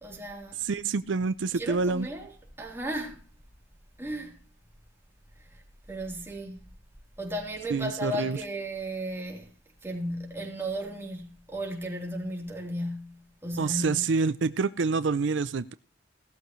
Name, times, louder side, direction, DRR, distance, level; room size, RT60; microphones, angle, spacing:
voice 1, 0.0-0.6 1.5-3.2 4.0-4.4 5.5-5.6 5.9-6.7 7.2-9.5 9.8-14.0, right 1 dB, 15° right, 3.5 m, -35 dB
voice 2, 0.6-2.1 7.7-8.4 13.6-15.7, right 4 dB, 80° right, 0.5 m, -27 dB
17.0 x 12.5 x 3.2 m
head